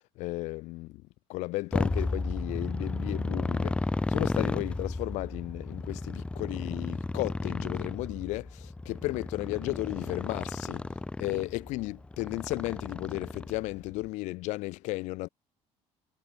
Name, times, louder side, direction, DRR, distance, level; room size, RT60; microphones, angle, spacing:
voice 1, 0.2-1.0 1.3-15.3, left 21 dB, 80° left, 8.0 m, -34 dB
Motorcycle, 1.7-13.8, left 2 dB, 10° left, 7.8 m, -33 dB
cardioid pair, 180°, 12 cm